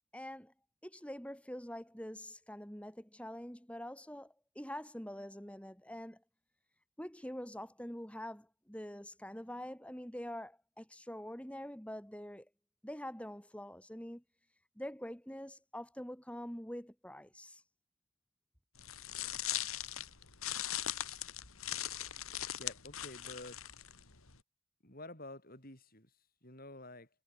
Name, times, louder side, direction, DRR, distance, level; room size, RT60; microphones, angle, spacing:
voice 1, 0.1-0.5 0.8-6.2 7.0-12.5 12.8-14.2 14.8-17.6, equal, 5° left, 3.0 m, -45 dB
sound 1, 18.8-24.4, left 12 dB, 75° left, 3.5 m, -40 dB
voice 2, 22.6-23.6 24.8-27.1, left 1 dB, 40° left, 7.6 m, -50 dB
head